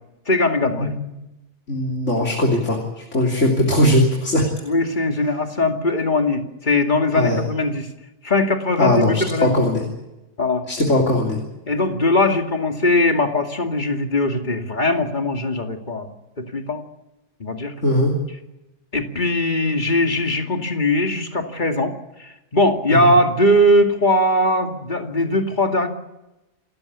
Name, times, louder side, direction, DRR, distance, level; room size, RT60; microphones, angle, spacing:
voice 1, 0.3-0.9 4.6-7.9 8.2-9.6 10.4-10.6 11.7-16.8 17.4-17.7 18.9-21.9 22.2-25.9, left 1 dB, 40° left, 4 dB, 2.5 m, -20 dB
voice 2, 1.7-4.5 7.2-7.4 8.8-9.9 10.7-11.4 17.8-18.1 22.9-23.1, left 1 dB, 80° left, 0 dB, 3.6 m, -19 dB
28.5 x 15.0 x 8.4 m, 0.96 s
omnidirectional pair, 1.2 m